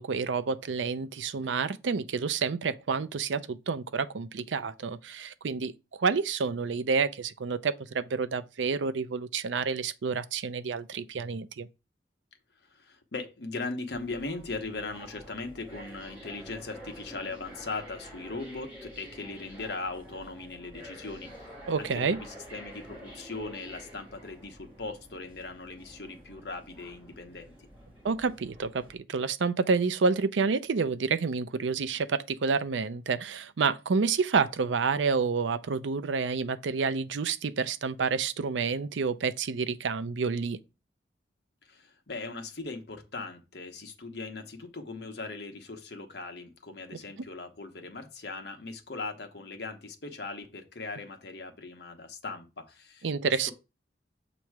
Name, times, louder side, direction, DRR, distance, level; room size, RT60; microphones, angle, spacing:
voice 1, 0.0-11.7 21.7-22.2 28.0-40.6 53.0-53.5, right 5 dB, 85° right, 0.5 m, -29 dB
voice 2, 12.6-21.5 21.8-27.7 41.6-53.5, left 3 dB, 65° left, 1.1 m, -39 dB
sound 1, 13.9-28.9, equal, 10° right, 2.4 m, -48 dB
7.2 x 3.0 x 4.6 m
head